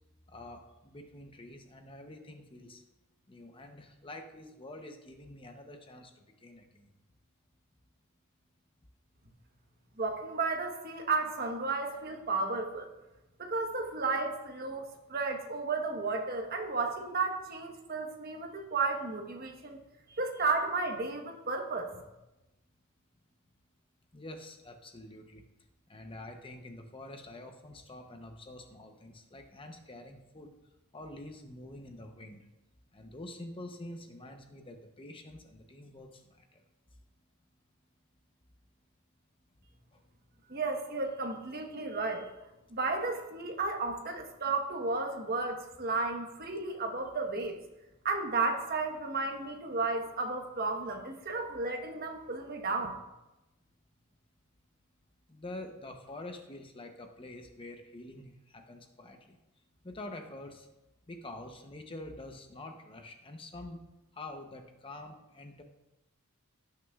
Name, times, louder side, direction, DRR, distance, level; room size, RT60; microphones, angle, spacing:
voice 1, 0.3-2.8 3.3-6.9 24.1-25.4 25.9-30.5 30.9-32.4 32.9-36.2 36.5-36.6 39.9-40.0 55.3-59.4 59.8-60.7 61.1-63.9 64.1-65.6, left 1 dB, 25° left, 4 dB, 0.7 m, -47 dB
voice 2, 10.0-12.9 13.4-19.8 20.2-21.9 40.5-42.3 42.7-47.6 48.0-53.0, right 3 dB, 45° right, 3 dB, 1.1 m, -33 dB
17.0 x 6.3 x 2.4 m, 0.98 s
head